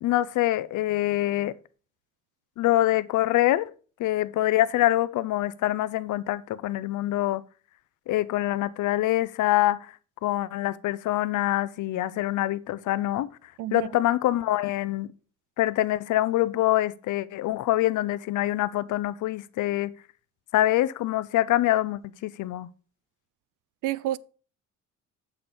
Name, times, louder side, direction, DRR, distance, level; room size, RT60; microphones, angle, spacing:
voice 1, 0.0-1.5 2.6-3.7 4.0-7.4 8.1-9.9 10.2-13.3 13.7-15.1 15.6-19.9 20.5-22.7, left 15 dB, 80° left, 0.6 m, -25 dB
voice 2, 23.8-24.2, right 14 dB, 90° right, 0.5 m, -29 dB
8.4 x 5.8 x 5.2 m
cardioid pair, 90°, 30 cm